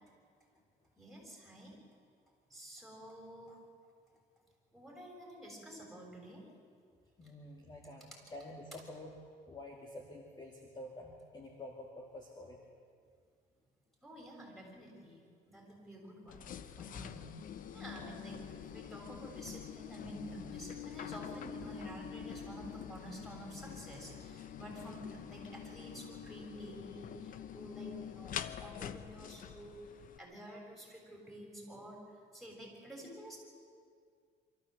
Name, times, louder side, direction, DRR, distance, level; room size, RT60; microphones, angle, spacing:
voice 1, 1.0-1.8 2.5-3.6 4.7-6.4 14.0-16.5 16.7-17.1 17.7-28.3 28.6-29.8 30.2-32.0 32.3-33.4, right 1 dB, ahead, -2 dB, 6.8 m, -50 dB
voice 2, 7.2-9.2 9.4-12.6 17.1-17.3 18.0-18.2, left 1 dB, 25° left, 0 dB, 2.4 m, -49 dB
sound 1, 16.3-30.2, left 8 dB, 55° left, 0.9 m, -46 dB
24.5 x 14.0 x 8.0 m, 2.1 s
cardioid pair, 110°, 17 cm